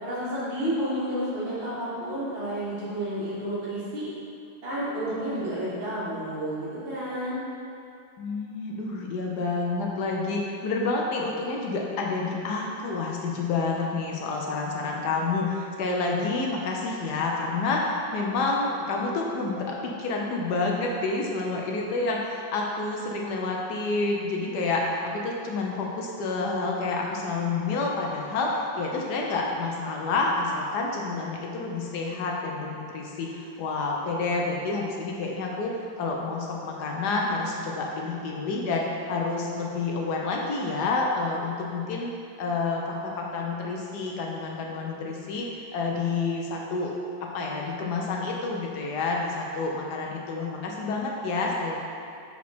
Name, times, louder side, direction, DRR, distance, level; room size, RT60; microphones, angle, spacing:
voice 1, 0.0-4.1 4.6-7.4, right 1 dB, 80° right, -9 dB, 2.5 m, -31 dB
voice 2, 8.2-42.1 42.4-45.5 45.7-46.9 47.2-51.7, left 3 dB, 70° left, -1 dB, 1.0 m, -29 dB
6.0 x 4.2 x 4.2 m, 2.5 s
omnidirectional pair, 2.2 m